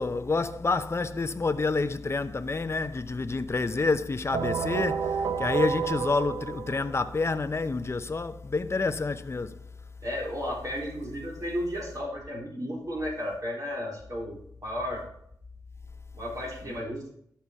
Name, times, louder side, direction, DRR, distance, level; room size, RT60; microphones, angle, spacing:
voice 1, 0.0-9.6, left 3 dB, 35° left, 0.7 m, -28 dB
sound 1, 4.3-7.2, right 6 dB, 75° right, 0.6 m, -30 dB
voice 2, 10.0-15.0 16.2-17.1, equal, 50° right, 4.0 m, -33 dB
12.0 x 5.7 x 4.7 m
cardioid pair, 60°, 8 cm